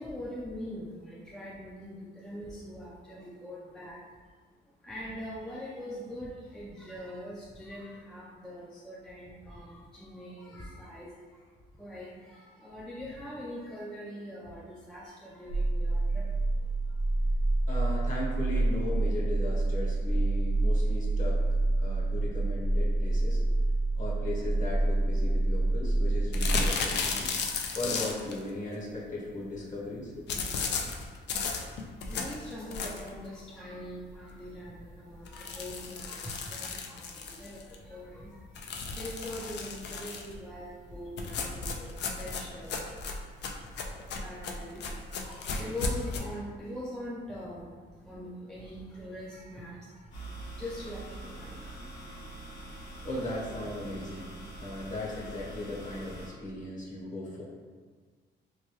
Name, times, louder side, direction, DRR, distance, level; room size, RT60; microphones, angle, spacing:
voice 1, 0.0-4.2 4.6-17.0 17.3-17.4 30.8-51.9 52.4-52.9, equal, 5° left, -6 dB, 0.4 m, -43 dB
sound 1, 15.5-26.7, right 2 dB, 60° right, 1.0 m, -27 dB
voice 2, 17.7-21.4 21.8-23.4 24.0-27.3 27.7-30.2 53.0-57.4, left 1 dB, 40° left, -5 dB, 1.0 m, -37 dB
sound 2, 26.3-28.4 30.3-33.2 33.7-33.8 34.1-34.2 34.5-34.6 35.2-37.8 38.6-40.3 41.2-46.2, left 4 dB, 60° left, 0.4 m, -34 dB
sound 3, 50.1-56.3, right 2 dB, 90° left, 1.3 m, -44 dB
3.0 x 2.3 x 2.9 m, 1.5 s
cardioid pair, 90°, 20 cm